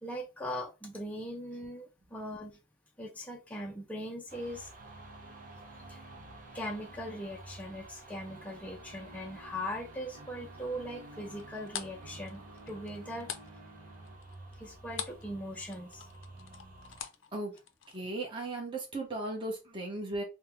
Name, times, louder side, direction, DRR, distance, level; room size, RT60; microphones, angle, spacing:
voice 1, 0.0-2.6 3.0-4.7 5.9-6.0 6.5-13.3 14.6-16.1, equal, 5° left, 0.4 m, -40 dB
sound 1, 4.3-17.0, right 2 dB, 40° right, 0.7 m, -51 dB
sound 2, 4.8-14.2, right 1 dB, 75° right, 0.8 m, -55 dB
sound 3, 11.3-15.3 15.6-18.0, left 9 dB, 60° left, 0.5 m, -43 dB
voice 2, 17.9-20.2, right 2 dB, 25° right, 1.0 m, -36 dB
4.2 x 2.1 x 3.6 m
head